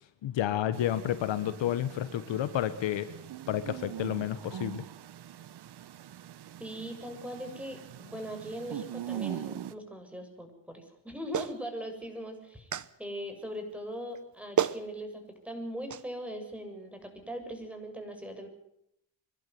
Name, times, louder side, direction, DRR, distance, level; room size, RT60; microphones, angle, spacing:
voice 1, 0.2-3.1 3.5-4.8, left 11 dB, 70° left, 13 dB, 1.5 m, -30 dB
sound 1, 0.7-9.7, right 10 dB, 60° right, 1.2 m, -42 dB
voice 2, 6.6-12.7 13.0-18.5, equal, 5° right, 5 dB, 7.3 m, -40 dB
Clapping, 11.3-11.6 12.7-12.9 14.1-14.2 14.6-14.8 15.9-16.0, right 9 dB, 40° right, 1.1 m, -29 dB
26.5 x 12.0 x 9.5 m, 0.76 s
cardioid pair, 85°, 45 cm